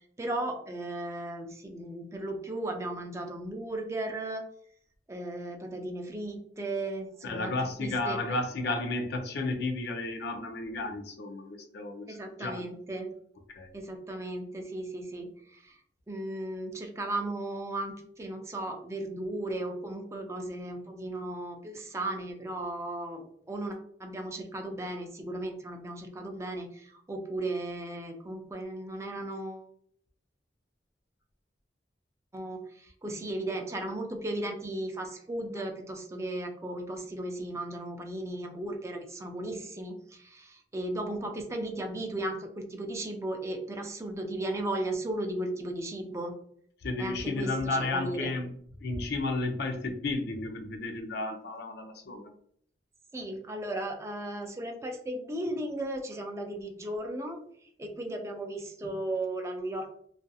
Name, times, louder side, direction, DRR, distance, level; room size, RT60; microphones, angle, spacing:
voice 1, 0.2-4.5 5.1-8.2 12.1-13.1 13.7-15.8 16.1-29.7 32.3-46.4 47.0-48.3 53.1-57.4 57.8-59.9, right 1 dB, 15° right, 3 dB, 0.4 m, -36 dB
voice 2, 7.2-12.6 13.5-13.7 46.8-48.5 48.8-52.3, left 2 dB, 65° left, 5 dB, 0.5 m, -33 dB
2.7 x 2.4 x 2.3 m, 0.65 s
head